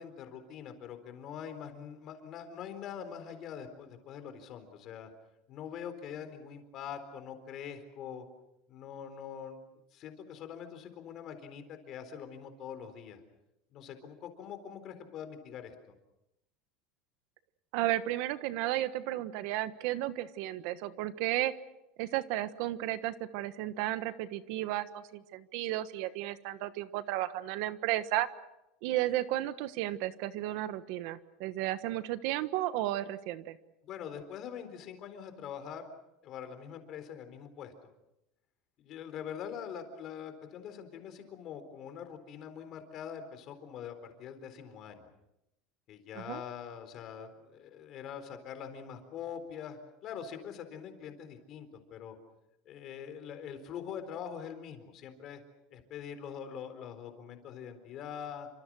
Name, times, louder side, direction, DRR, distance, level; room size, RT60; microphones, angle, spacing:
voice 1, 0.0-5.1 5.5-8.2 8.7-9.6 9.9-13.2 13.7-15.7 33.8-35.9 36.2-37.7 38.8-45.1 45.9-52.2 52.7-55.4 55.7-58.5, left 8 dB, 35° left, 8 dB, 4.1 m, -44 dB
voice 2, 17.7-21.5 22.0-28.3 28.8-33.6 46.1-46.4, right 14 dB, 60° right, 12 dB, 1.3 m, -33 dB
29.0 x 26.0 x 6.3 m, 0.88 s
cardioid pair, 170°, 0 cm